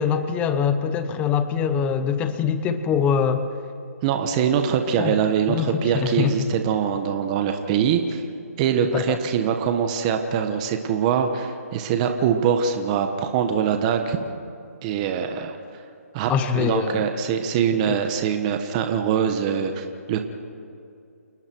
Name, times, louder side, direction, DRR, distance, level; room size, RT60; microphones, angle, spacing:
voice 1, 0.0-3.5 4.6-4.7 5.0-5.1 5.5-6.5 8.9-9.2 16.3-17.0, left 7 dB, 15° left, 10 dB, 0.9 m, -23 dB
voice 2, 4.0-8.2 8.6-14.2 14.8-15.6 16.1-20.2, right 7 dB, 25° right, 6 dB, 1.3 m, -23 dB
29.0 x 19.5 x 4.7 m, 2.5 s
hypercardioid pair, 150°, 9 cm